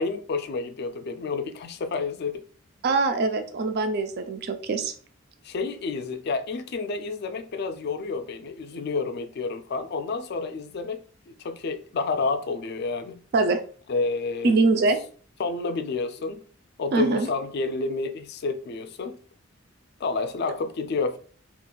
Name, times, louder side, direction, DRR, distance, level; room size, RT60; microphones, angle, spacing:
voice 1, 0.0-2.4 5.4-13.2 13.9-14.5 15.4-16.4 16.8-19.2 20.0-21.2, left 4 dB, 50° left, 0.3 m, -29 dB
voice 2, 2.8-4.9 13.3-13.6 14.4-15.0 16.9-17.3, right 3 dB, 50° right, 0.3 m, -23 dB
2.4 x 2.2 x 3.7 m
head